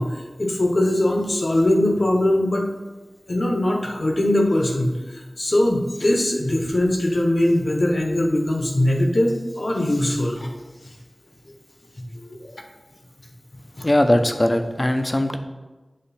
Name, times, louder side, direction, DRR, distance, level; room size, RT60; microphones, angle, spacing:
voice 1, 0.0-2.7 3.3-10.5 12.1-12.5 13.8-13.9, left 1 dB, 65° left, 2 dB, 0.9 m, -21 dB
voice 2, 13.8-15.4, left 1 dB, 35° left, 7 dB, 0.5 m, -19 dB
7.7 x 3.2 x 4.2 m, 1.2 s
wide cardioid pair, 50°, 0 cm